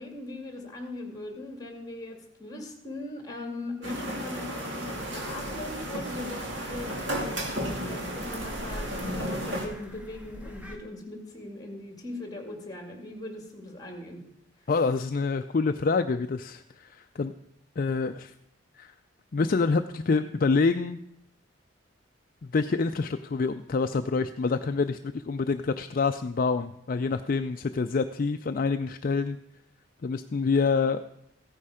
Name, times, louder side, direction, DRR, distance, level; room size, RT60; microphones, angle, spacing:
voice 1, 0.0-14.3 14.6-14.7, left 2 dB, 20° left, 3 dB, 2.3 m, -40 dB
sound 1, 3.8-9.7, equal, 65° right, 2.5 m, -34 dB
sound 2, 4.9-10.8, equal, 10° right, 1.7 m, -44 dB
voice 2, 14.7-17.3 17.8-18.3 18.8-18.9 19.3-21.0 22.4-29.4 30.0-31.0, left 4 dB, 45° left, 8 dB, 0.4 m, -27 dB
15.0 x 9.9 x 4.9 m, 0.77 s
head